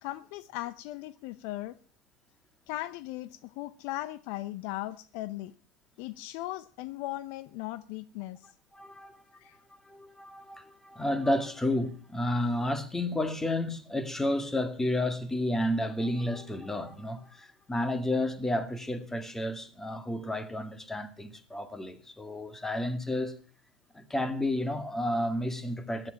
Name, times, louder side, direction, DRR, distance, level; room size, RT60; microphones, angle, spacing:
voice 1, 0.0-1.8 2.7-5.5 6.0-8.5 9.3-9.6, left 16 dB, 55° left, 0.7 m, -38 dB
voice 2, 8.7-9.4 9.7-23.4 23.9-26.1, left 1 dB, 10° left, 2.0 m, -31 dB
15.5 x 11.5 x 5.8 m
hypercardioid pair, 85°, 4 cm